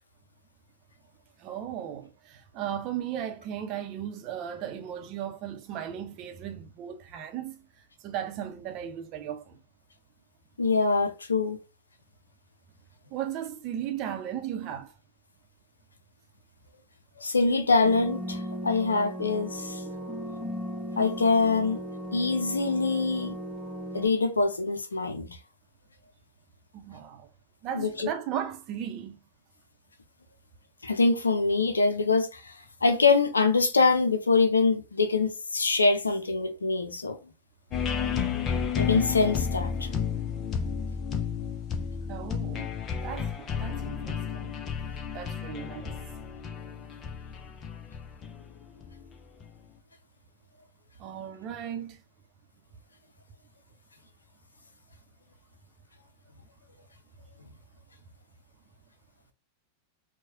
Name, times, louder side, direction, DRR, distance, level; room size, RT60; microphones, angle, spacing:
voice 1, 1.4-7.7 8.0-9.6 13.1-14.9 20.3-20.4 26.7-27.3 27.6-29.2 42.1-44.6 45.1-46.0 51.0-52.0, right 10 dB, 40° right, 0.7 m, -36 dB
voice 2, 10.6-11.6 17.2-19.8 21.0-21.8 22.1-23.3 23.9-25.4 27.7-28.1 30.8-32.5 32.8-37.2 38.8-39.9, left 4 dB, 75° left, 0.6 m, -24 dB
sound 1, 17.8-24.1, equal, ahead, 0.9 m, -36 dB
sound 2, 37.7-49.5, left 7 dB, 30° left, 0.7 m, -32 dB
4.6 x 2.3 x 2.8 m
figure-of-eight pair, 90°, 0 cm